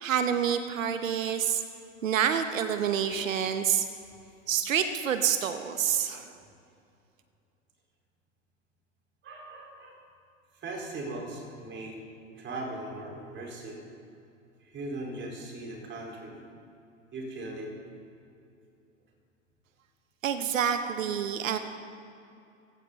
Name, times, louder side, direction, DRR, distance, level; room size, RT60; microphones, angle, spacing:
voice 1, 0.0-1.6 2.0-3.9 4.5-6.3 20.2-21.6, right 8 dB, 75° right, 8 dB, 1.1 m, -27 dB
voice 2, 9.2-10.0 10.6-12.0 12.4-13.8 14.6-16.4 17.1-17.7, right 2 dB, 30° right, -1 dB, 4.6 m, -39 dB
17.0 x 16.5 x 4.1 m, 2.6 s
figure-of-eight pair, 90°, 40 cm